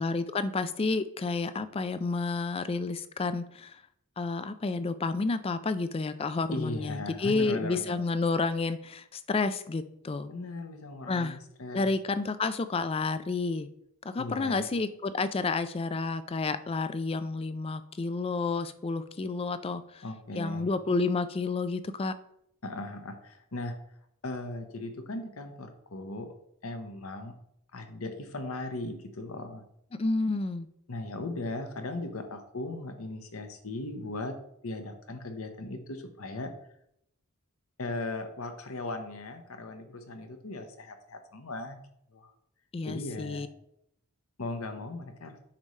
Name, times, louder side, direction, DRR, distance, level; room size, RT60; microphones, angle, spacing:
voice 1, 0.0-3.8 4.2-10.3 11.1-11.4 11.7-13.7 14.0-20.0 20.3-22.2 29.9-30.7 42.7-43.5, left 3 dB, 25° left, 12 dB, 0.3 m, -30 dB
voice 2, 6.5-8.0 10.3-11.9 14.2-14.7 20.0-20.7 22.6-23.7 24.2-26.3 26.6-27.3 27.7-29.6 30.9-34.4 34.6-36.5 37.8-41.8 42.1-42.3 42.9-43.5 44.4-45.4, left 2 dB, 70° left, 7 dB, 0.9 m, -38 dB
8.6 x 5.4 x 3.2 m, 0.75 s
head